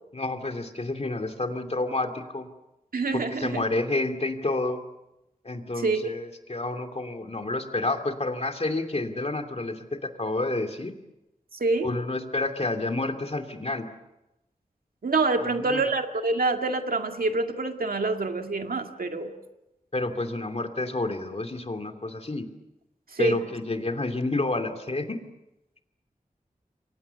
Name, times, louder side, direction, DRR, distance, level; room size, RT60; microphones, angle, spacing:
voice 1, 0.1-2.5 3.1-4.8 5.4-10.9 11.8-13.9 15.6-15.8 19.9-22.5 23.2-25.2, left 2 dB, 45° left, 6 dB, 2.7 m, -29 dB
voice 2, 2.9-3.6 5.8-6.1 11.5-11.9 15.0-19.3 23.1-23.4, right 3 dB, 90° right, 5 dB, 2.2 m, -26 dB
28.5 x 24.0 x 7.0 m, 0.95 s
wide cardioid pair, 75°, 15 cm